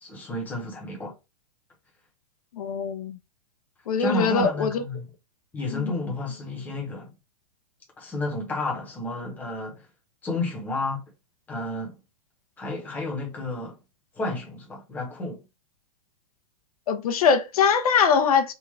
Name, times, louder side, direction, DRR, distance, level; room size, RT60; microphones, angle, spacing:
voice 1, 0.0-1.1 4.0-5.1 5.5-7.1 8.0-9.9 10.2-11.0 11.5-11.9 12.6-13.8 14.1-15.4, left 1 dB, 10° left, 0.9 m, -31 dB
voice 2, 2.5-3.2 3.9-4.8 5.7-5.9 16.9-18.5, left 6 dB, 75° left, 0.7 m, -22 dB
3.6 x 2.4 x 3.2 m
supercardioid pair, 160°, 19 cm